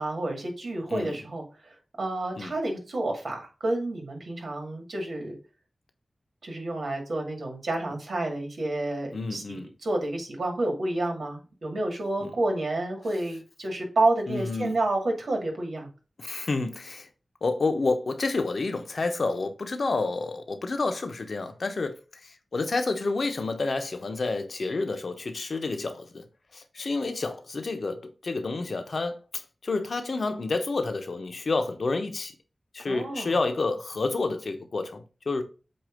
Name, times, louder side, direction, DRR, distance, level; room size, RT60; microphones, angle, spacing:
voice 1, 0.0-5.3 6.4-15.9 32.9-33.3, right 2 dB, 80° right, 2.1 m, -29 dB
voice 2, 9.1-9.7 12.2-12.3 14.3-14.8 16.2-17.1 17.4-21.9 22.2-26.2 26.5-29.2 29.6-32.3 32.7-35.4, left 3 dB, 70° left, 1.1 m, -29 dB
7.9 x 2.8 x 5.1 m
wide cardioid pair, 60°, 0 cm